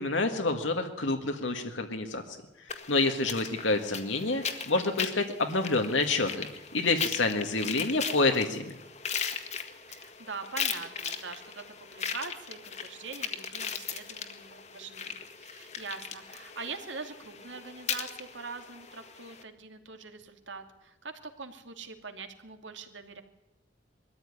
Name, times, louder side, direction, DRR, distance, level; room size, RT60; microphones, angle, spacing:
voice 1, 0.0-2.2 2.9-6.5 6.7-8.7, left 3 dB, 85° left, 4 dB, 1.9 m, -28 dB
sound 1, 2.7-19.4, left 6 dB, 35° left, 1.8 m, -38 dB
voice 2, 9.9-23.2, right 4 dB, 80° right, 6 dB, 2.5 m, -43 dB
22.5 x 14.0 x 9.8 m, 0.97 s
head